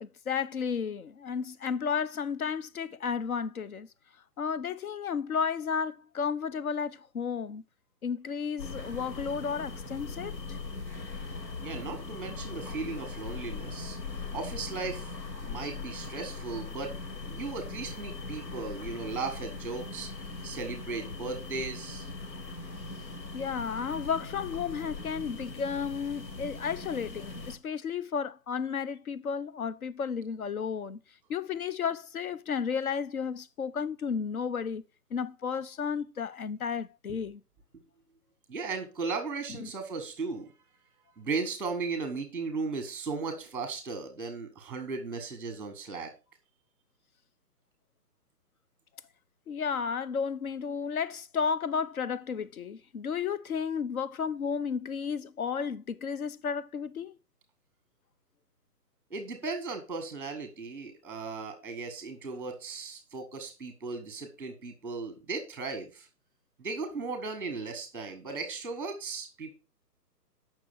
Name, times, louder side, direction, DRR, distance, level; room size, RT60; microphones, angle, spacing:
voice 1, 0.0-3.9 4.4-7.6 8.0-10.6 23.3-31.0 31.3-34.8 35.1-37.4 39.6-39.7 49.5-57.2 68.3-68.4, left 6 dB, 60° left, 1.0 m, -33 dB
sound 1, 8.6-27.6, left 3 dB, 85° left, 2.7 m, -40 dB
voice 2, 11.6-14.0 14.3-15.1 15.4-16.9 17.3-20.1 20.4-22.1 38.5-40.5 41.2-46.1 59.1-66.1 66.6-69.5, right 4 dB, 5° right, 1.1 m, -36 dB
8.3 x 6.1 x 6.6 m
hypercardioid pair, 155°, 49 cm